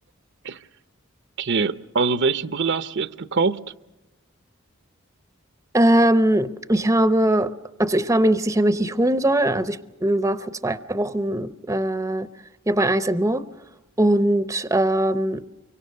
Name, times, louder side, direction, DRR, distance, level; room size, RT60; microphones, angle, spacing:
voice 1, 1.4-3.6, right 4 dB, 55° right, 0.7 m, -23 dB
voice 2, 5.7-7.5 7.8-12.3 12.7-13.4 14.0-15.4, right 1 dB, 15° right, 0.7 m, -20 dB
24.5 x 24.5 x 6.5 m
head